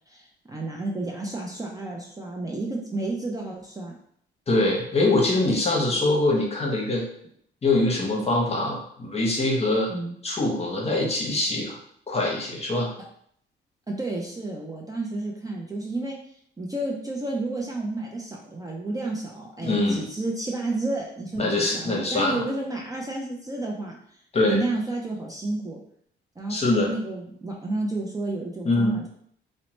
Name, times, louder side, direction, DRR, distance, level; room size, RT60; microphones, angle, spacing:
voice 1, 0.1-4.0 9.9-10.1 13.9-16.2 16.6-24.0 24.4-25.8 26.4-29.1, right 2 dB, 20° right, -1 dB, 0.5 m, -31 dB
voice 2, 4.5-7.1 7.6-9.9 10.2-11.8 12.1-12.9 19.6-20.0 21.4-22.4 24.3-24.6 26.5-26.9 28.6-29.0, left 2 dB, 30° left, 0 dB, 0.8 m, -23 dB
2.8 x 2.1 x 3.0 m, 0.66 s
cardioid pair, 90°, 20 cm